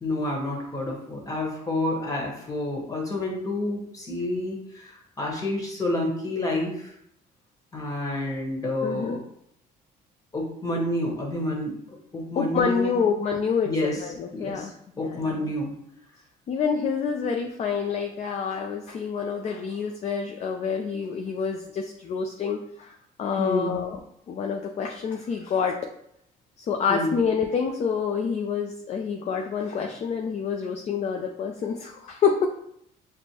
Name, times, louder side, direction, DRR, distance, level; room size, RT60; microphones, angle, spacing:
voice 1, 0.0-6.9 7.7-9.2 10.3-11.7 12.1-13.0 13.6-14.0 14.3-14.7 15.0-15.7 23.4-23.8 26.9-27.2, left 1 dB, 20° left, -1 dB, 1.2 m, -29 dB
voice 2, 8.8-9.2 12.4-15.5 16.5-24.0 24.3-25.8 26.6-32.5, left 6 dB, 40° left, 2 dB, 0.4 m, -27 dB
6.1 x 2.1 x 2.8 m, 0.71 s
cardioid pair, 110°, 17 cm